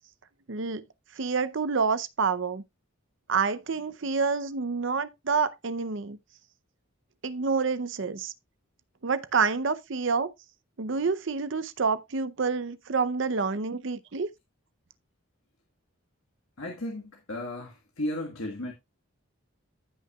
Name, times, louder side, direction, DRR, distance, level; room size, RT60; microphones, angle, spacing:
voice 1, 0.5-0.8 1.2-2.6 3.3-6.2 7.2-8.3 9.0-10.3 10.8-14.3, right 5 dB, 60° right, 0.6 m, -28 dB
voice 2, 16.6-18.7, left 1 dB, 80° left, 1.5 m, -34 dB
15.5 x 5.7 x 2.3 m
head